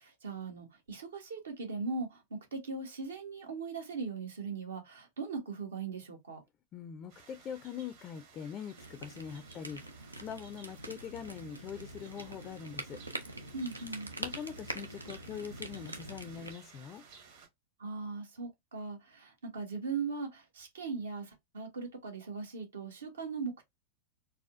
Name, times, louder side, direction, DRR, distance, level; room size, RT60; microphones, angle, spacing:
voice 1, 0.0-6.4 13.5-14.1 17.8-23.6, right 4 dB, 65° right, 1.2 m, -39 dB
voice 2, 6.7-13.0 14.2-17.0, left 8 dB, 30° left, 0.4 m, -43 dB
sound 1, 7.1-17.5, right 5 dB, 50° right, 1.5 m, -57 dB
sound 2, 8.8-16.5, right 1 dB, 85° right, 0.6 m, -44 dB
4.1 x 2.3 x 2.4 m
figure-of-eight pair, 90°, 0 cm